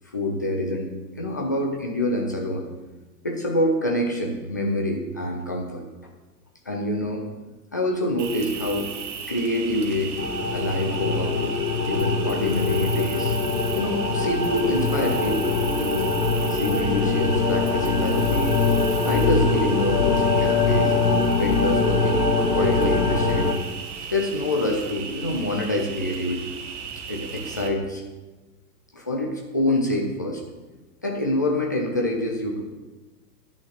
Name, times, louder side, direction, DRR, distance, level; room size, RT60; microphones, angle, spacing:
voice 1, 0.1-0.9 1.2-2.6 3.2-5.8 6.7-7.2 7.7-8.9 9.3-10.2 10.5-11.6 11.8-13.4 13.7-16.2 16.5-18.6 19.0-20.9 21.4-22.2 22.5-23.5 24.1-26.5 27.1-28.0 28.9-30.4 31.0-32.6, left 1 dB, 15° left, 1 dB, 0.3 m, -26 dB
Cricket, 8.2-27.7, right 6 dB, 45° right, 1.5 m, -36 dB
sound 1, 10.2-23.5, left 4 dB, 70° left, 1.5 m, -23 dB
10.5 x 6.1 x 6.5 m, 1.2 s
figure-of-eight pair, 100°, 49 cm